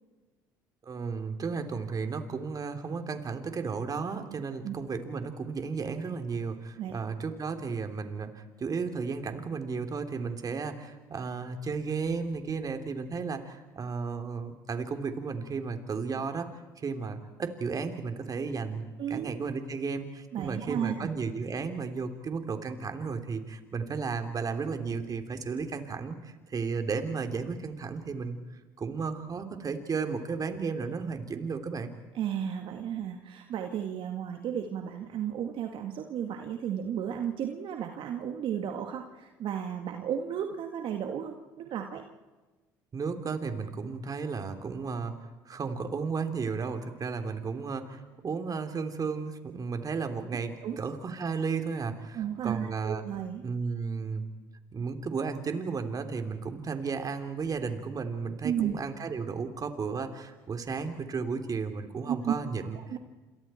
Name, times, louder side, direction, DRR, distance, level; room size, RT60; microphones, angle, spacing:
voice 1, 0.8-16.5 16.8-28.4 28.8-31.9 42.9-45.1 45.4-53.0 53.4-54.3 54.7-62.8, right 5 dB, 40° right, 7 dB, 3.4 m, -34 dB
voice 2, 19.0-19.3 20.3-21.1 32.1-42.0 50.6-50.8 52.1-53.4 58.4-58.8 62.1-62.4 62.8-63.0, right 9 dB, 60° right, 4 dB, 2.1 m, -33 dB
29.0 x 27.5 x 4.5 m, 1.2 s
hypercardioid pair, 70°, 10 cm